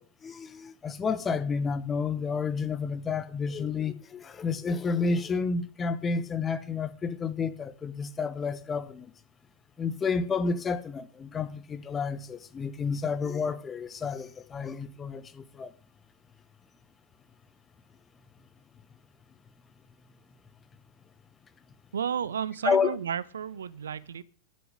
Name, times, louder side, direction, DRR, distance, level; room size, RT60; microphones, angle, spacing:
voice 1, 0.0-9.1 9.8-15.7 22.6-22.9, left 5 dB, 20° left, 1.1 m, -30 dB
voice 2, 21.9-24.2, right 8 dB, 65° right, 0.6 m, -32 dB
11.0 x 7.0 x 8.8 m
figure-of-eight pair, 90°, 0 cm